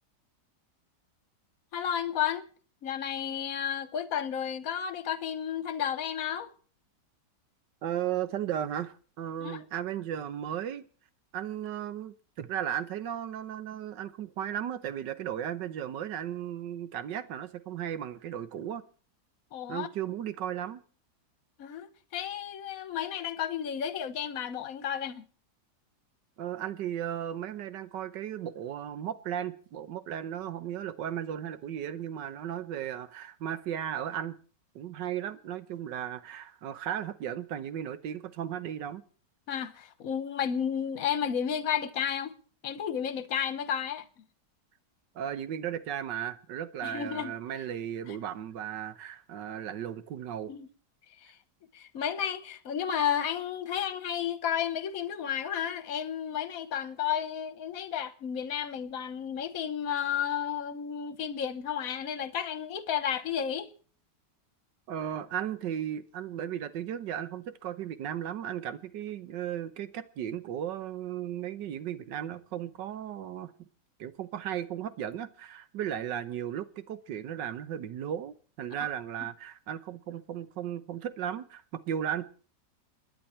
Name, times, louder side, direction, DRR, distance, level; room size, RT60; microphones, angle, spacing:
voice 1, 1.7-2.4 2.8-6.5 9.4-9.6 19.5-19.9 21.6-21.9 22.1-25.3 39.5-42.4 42.6-44.0 46.8-47.3 48.1-48.2 50.5-50.7 51.2-51.3 51.7-63.7 78.8-78.9, left 8 dB, 55° left, 1.4 m, -32 dB
voice 2, 7.8-10.9 11.3-18.8 19.7-20.8 26.4-34.4 34.7-39.0 45.1-50.5 64.9-73.5 74.0-82.3, right 10 dB, 85° right, 1.6 m, -35 dB
29.5 x 10.0 x 4.4 m
omnidirectional pair, 1.9 m